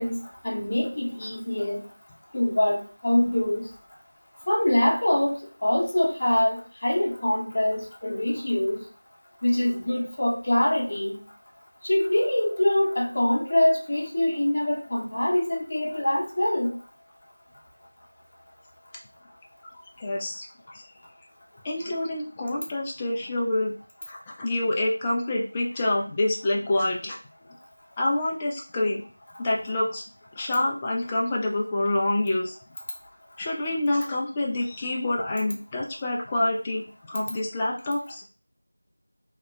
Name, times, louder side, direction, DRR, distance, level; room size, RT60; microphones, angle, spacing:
voice 1, 0.0-1.8 2.3-3.7 4.5-8.8 9.4-11.2 11.8-16.7, left 1 dB, 30° left, -3 dB, 0.7 m, -24 dB
voice 2, 20.0-20.5 20.7-20.9 21.6-23.7 24.1-27.2 28.0-29.0 29.4-30.0 30.4-32.6 33.4-36.8 37.1-38.2, left 1 dB, 10° left, -2 dB, 0.3 m, -27 dB
2.8 x 2.1 x 3.4 m, 0.37 s
figure-of-eight pair, 175°, 0 cm